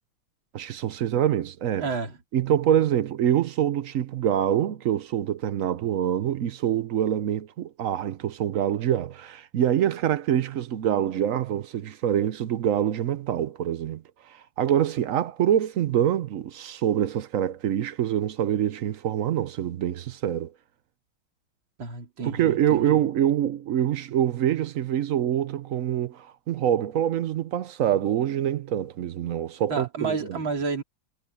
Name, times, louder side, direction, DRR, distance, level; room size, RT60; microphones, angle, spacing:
voice 1, 0.5-1.9 2.3-20.5 22.2-30.4, right 10 dB, 90° right, 0.7 m, -25 dB
voice 2, 1.8-2.2 21.8-23.0 29.7-30.8, right 5 dB, 60° right, 4.4 m, -30 dB
omnidirectional pair, 2.4 m